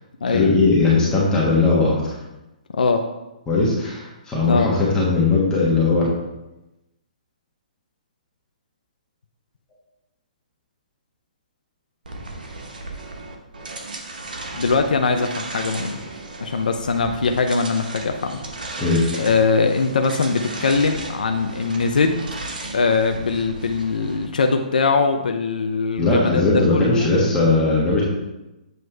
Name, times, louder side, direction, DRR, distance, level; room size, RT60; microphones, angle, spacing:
voice 1, 0.3-2.1 3.5-6.1 18.8-19.0 26.0-28.0, left 3 dB, 15° left, -6 dB, 1.4 m, -18 dB
voice 2, 2.7-3.1 4.4-4.7 14.5-16.0 16.4-18.4 19.2-22.2 22.7-27.1, left 4 dB, 75° left, 5 dB, 0.5 m, -21 dB
sound 1, 12.0-24.3, right 2 dB, 75° right, 1.1 m, -35 dB
7.9 x 3.1 x 4.5 m, 0.98 s
hypercardioid pair, 135°, 5 cm